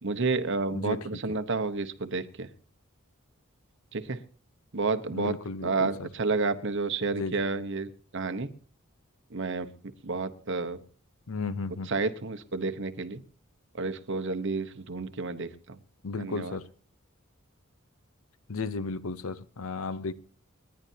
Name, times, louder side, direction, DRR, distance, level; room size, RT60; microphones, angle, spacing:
voice 1, 0.0-2.5 3.9-4.2 4.7-5.4 5.6-8.5 9.3-9.7 10.0-10.8 11.8-13.2 13.7-15.8 16.2-16.6, right 4 dB, 60° right, 1.1 m, -30 dB
voice 2, 0.7-1.4 5.1-6.1 7.2-7.4 11.3-11.9 16.0-16.6 18.5-20.1, left 4 dB, 85° left, 0.8 m, -34 dB
29.0 x 10.5 x 2.8 m
head